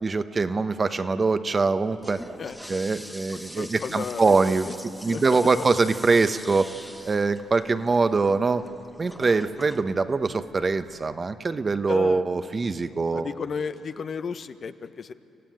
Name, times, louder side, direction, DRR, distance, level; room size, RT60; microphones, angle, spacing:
voice 1, 0.0-2.2 2.7-4.7 5.0-6.7 7.1-8.6 9.0-13.3, right 4 dB, 35° right, 10 dB, 1.1 m, -23 dB
Toilet flush, 1.7-11.1, equal, ahead, 1.3 m, -44 dB
voice 2, 2.4-2.9 3.5-4.8 5.1-5.7 11.9-12.2 13.1-15.1, left 6 dB, 55° left, 11 dB, 1.0 m, -34 dB
29.0 x 15.5 x 9.4 m, 2.7 s
supercardioid pair, 60°, 0 cm